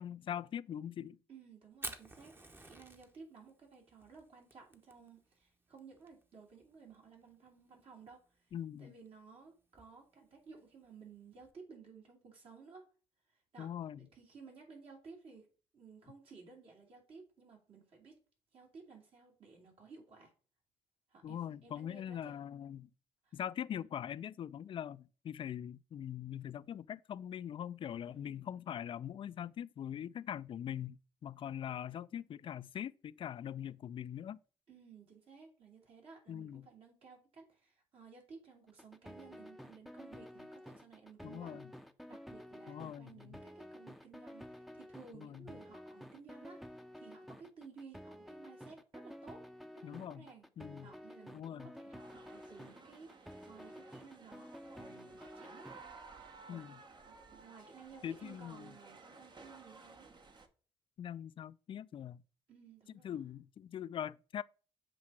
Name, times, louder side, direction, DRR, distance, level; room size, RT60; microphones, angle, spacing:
voice 1, 0.0-1.2 8.5-8.9 13.6-14.0 21.2-22.9 23.3-34.4 36.3-36.7 41.2-41.7 42.7-43.4 45.1-45.5 49.8-50.3 50.6-50.9 51.3-51.7 56.5-56.8 58.0-58.7 61.0-62.2 63.0-64.4, left 9 dB, 55° left, 0.3 m, -42 dB
voice 2, 1.3-8.4 8.8-12.9 13.5-13.7 14.0-15.5 15.7-18.1 18.5-20.3 21.1-22.4 23.2-23.4 28.0-28.4 34.7-41.6 42.1-49.4 49.7-50.5 50.8-55.7 56.4-56.6 57.1-60.1 62.5-63.3, right 5 dB, 65° right, 2.9 m, -56 dB
Fire, 1.7-11.5, right 1 dB, 20° right, 1.0 m, -53 dB
sound 1, 38.7-55.8, equal, ahead, 0.6 m, -51 dB
sound 2, 52.0-60.5, right 4 dB, 45° right, 0.9 m, -56 dB
7.5 x 2.8 x 6.0 m
supercardioid pair, 60°, 11 cm